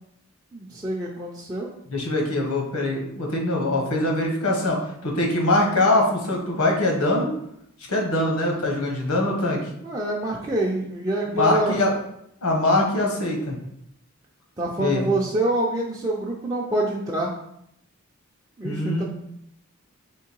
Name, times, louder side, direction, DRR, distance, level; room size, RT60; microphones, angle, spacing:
voice 1, 0.5-1.7 9.7-11.8 14.6-17.3 18.6-19.0, right 1 dB, 15° right, -5 dB, 0.5 m, -26 dB
voice 2, 1.9-4.8 5.0-7.3 7.9-9.6 11.3-11.9 12.4-13.6 14.8-15.0 18.6-19.0, left 2 dB, 80° left, 0 dB, 1.2 m, -22 dB
3.7 x 3.1 x 4.6 m, 0.74 s
head